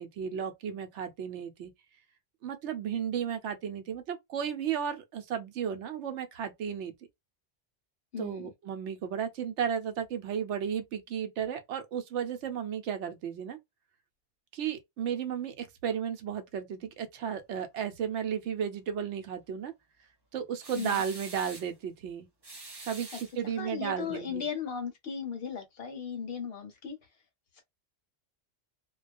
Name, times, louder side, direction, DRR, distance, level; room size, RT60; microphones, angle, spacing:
voice 1, 0.0-1.7 2.4-6.9 8.2-13.6 14.5-19.7 20.3-22.3 22.8-24.5, right 8 dB, 85° right, 0.9 m, -34 dB
voice 2, 8.1-8.5 20.7-21.0 23.4-27.0 27.6-27.7, left 7 dB, 60° left, 0.9 m, -37 dB
sound 1, 20.6-21.7 22.4-23.7, right 2 dB, 30° right, 0.5 m, -45 dB
2.3 x 2.2 x 2.4 m
omnidirectional pair, 1.2 m